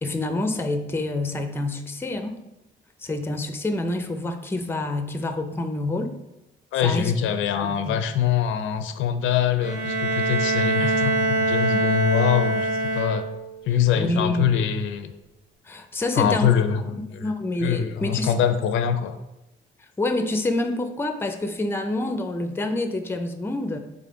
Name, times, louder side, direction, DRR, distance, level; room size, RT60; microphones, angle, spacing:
voice 1, 0.0-2.4 3.0-6.2 6.8-7.1 7.6-8.0 13.9-14.6 15.6-16.6 17.2-18.4 20.0-23.8, left 2 dB, 10° left, 7 dB, 0.4 m, -27 dB
voice 2, 6.7-13.2 13.7-15.1 16.2-17.2 17.6-19.1, left 9 dB, 80° left, 9 dB, 0.4 m, -24 dB
Bowed string instrument, 9.6-13.6, right 2 dB, 75° right, 1.3 m, -24 dB
3.7 x 3.5 x 3.7 m, 0.94 s
cardioid pair, 90°, 20 cm